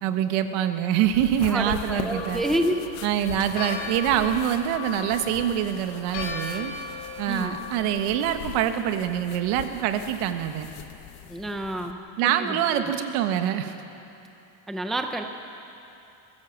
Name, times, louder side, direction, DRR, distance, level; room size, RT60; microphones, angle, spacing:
voice 1, 0.0-2.4 3.0-6.7 7.2-10.7 12.2-13.7, right 10 dB, 85° right, 8 dB, 1.6 m, -25 dB
sound 1, 1.0-11.9, left 12 dB, 80° left, 1.2 m, -41 dB
voice 2, 1.5-2.9 7.3-7.6 11.3-12.8 14.7-15.2, right 1 dB, ahead, 4 dB, 0.5 m, -29 dB
Church bell, 1.9-8.6, left 4 dB, 60° left, 3.3 m, -37 dB
22.5 x 16.0 x 7.3 m, 2.7 s
cardioid pair, 180°, 48 cm